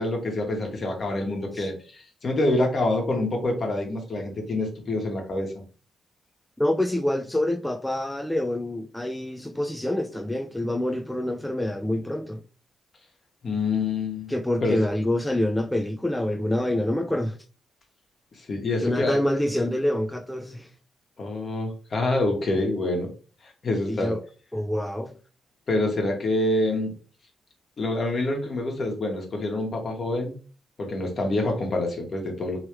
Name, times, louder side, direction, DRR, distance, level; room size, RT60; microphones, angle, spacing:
voice 1, 0.0-5.5 13.4-14.3 14.6-14.8 18.5-19.2 21.2-23.1 23.6-24.1 25.7-26.9 27.8-30.3 30.8-32.6, left 2 dB, 55° left, 1.3 m, -26 dB
voice 2, 6.6-12.4 14.3-17.4 18.8-20.7 23.9-24.2 24.5-25.2, left 1 dB, 10° left, 0.4 m, -26 dB
3.3 x 3.1 x 3.1 m
supercardioid pair, 60°, 0 cm